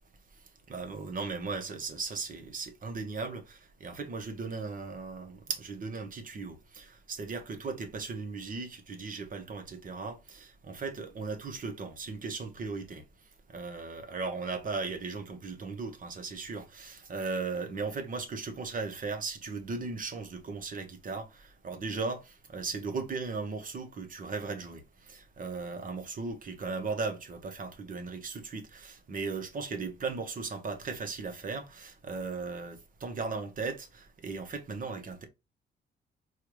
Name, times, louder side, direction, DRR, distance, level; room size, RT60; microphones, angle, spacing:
voice 1, 0.7-13.0 13.5-35.3, right 4 dB, 45° right, 1.1 m, -37 dB
4.5 x 2.5 x 3.0 m
cardioid pair, 90°, 20 cm